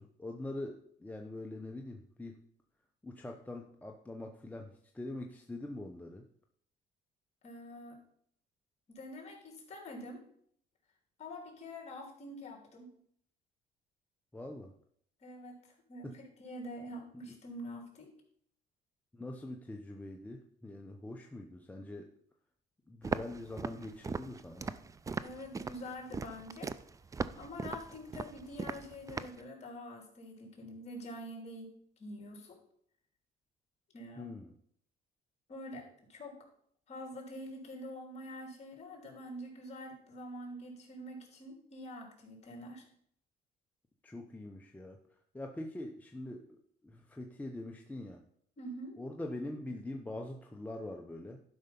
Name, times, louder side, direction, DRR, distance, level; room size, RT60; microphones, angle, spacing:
voice 1, 0.0-2.4 3.0-6.3 14.3-14.7 16.0-16.1 19.1-22.1 22.9-24.8 34.2-34.5 44.0-48.2 49.0-51.4, left 1 dB, 10° left, 2 dB, 0.8 m, -44 dB
voice 2, 7.4-8.0 8.9-10.2 11.2-12.9 15.2-15.6 15.9-18.1 25.2-26.7 27.4-31.7 32.0-32.6 33.9-34.3 35.5-36.4 36.9-42.8 48.6-49.0, equal, 40° left, 1 dB, 3.2 m, -46 dB
Walk footsteps, 23.0-29.4, right 4 dB, 20° right, 0.4 m, -39 dB
11.5 x 5.5 x 5.4 m, 0.66 s
cardioid pair, 110°, 17 cm